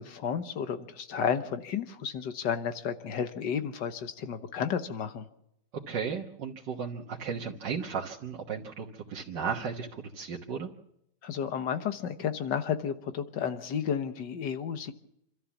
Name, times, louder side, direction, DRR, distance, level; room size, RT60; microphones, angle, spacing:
voice 1, 0.0-5.3 11.2-14.9, left 7 dB, 85° left, 10 dB, 1.9 m, -32 dB
voice 2, 5.9-10.7, right 6 dB, 85° right, -2 dB, 2.0 m, -35 dB
26.5 x 13.5 x 7.2 m, 0.78 s
omnidirectional pair, 1.8 m